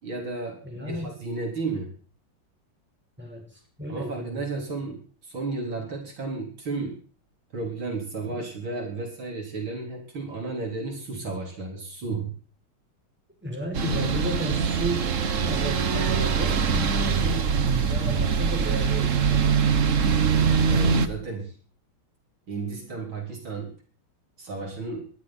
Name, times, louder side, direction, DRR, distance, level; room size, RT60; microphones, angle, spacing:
voice 1, 0.0-1.9 3.9-7.0 7.5-12.3 20.0-20.2 20.7-21.6 22.5-23.7 24.4-25.1, right 3 dB, 70° right, 1 dB, 4.8 m, -33 dB
voice 2, 0.6-1.2 3.2-4.4 13.4-19.4, right 1 dB, 5° right, 1 dB, 5.9 m, -34 dB
sound 1, 13.7-21.1, right 6 dB, 45° right, 1.2 m, -23 dB
19.0 x 12.0 x 6.0 m, 0.42 s
omnidirectional pair, 2.3 m